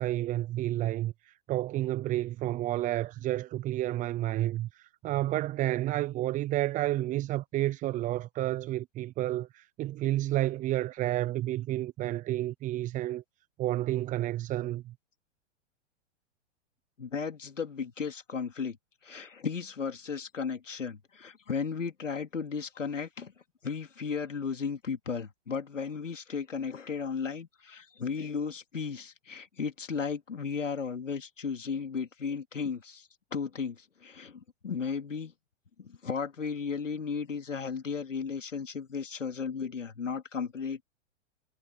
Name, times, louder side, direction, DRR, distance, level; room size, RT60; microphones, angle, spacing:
voice 1, 0.0-13.2 13.6-14.9, right 15 dB, 20° right, 0.6 m, -30 dB
voice 2, 17.0-18.8 19.0-23.3 23.6-35.3 35.8-40.8, left 5 dB, 85° left, 3.4 m, -35 dB
hypercardioid pair, 110°, 37 cm